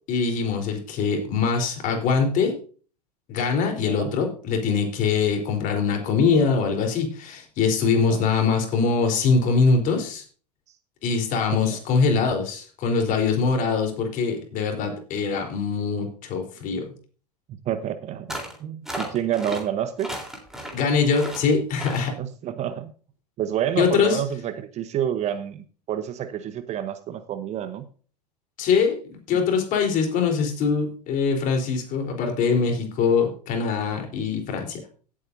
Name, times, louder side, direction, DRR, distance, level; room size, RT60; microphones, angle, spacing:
voice 1, 0.1-2.5 3.3-10.2 11.0-16.9 20.7-22.2 23.8-24.2 28.6-34.8, left 5 dB, 40° left, 3 dB, 3.9 m, -23 dB
voice 2, 17.5-20.1 22.1-22.9 23.4-27.9 29.3-29.4, right 10 dB, 35° right, 12 dB, 1.0 m, -29 dB
sound 1, 18.3-18.6 18.9-19.6 20.0-20.8 21.1-21.4 21.8-22.1, right 1 dB, ahead, 3.6 m, -34 dB
17.0 x 8.7 x 2.7 m, 0.39 s
hypercardioid pair, 90°, 21 cm